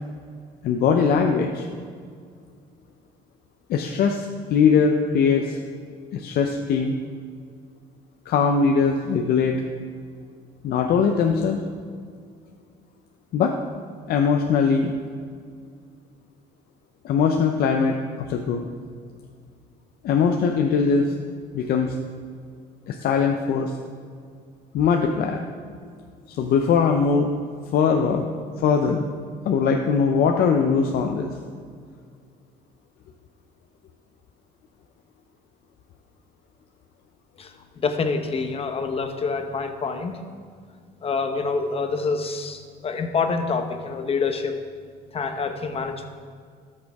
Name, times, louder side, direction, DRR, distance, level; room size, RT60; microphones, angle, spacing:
voice 1, 0.6-1.7 3.7-5.6 6.1-6.9 8.3-9.6 10.6-11.6 13.3-13.5 14.1-14.9 17.0-18.7 20.0-21.1 21.5-22.0 22.9-23.7 24.7-25.4 26.3-27.3 27.7-28.3 28.6-29.0 29.4-31.3, left 6 dB, 65° left, 3 dB, 0.7 m, -21 dB
voice 2, 37.8-40.2 41.0-44.6 45.1-46.0, left 4 dB, 35° left, 6 dB, 0.9 m, -26 dB
13.0 x 6.6 x 3.6 m, 2.1 s
cardioid pair, 110°, 17 cm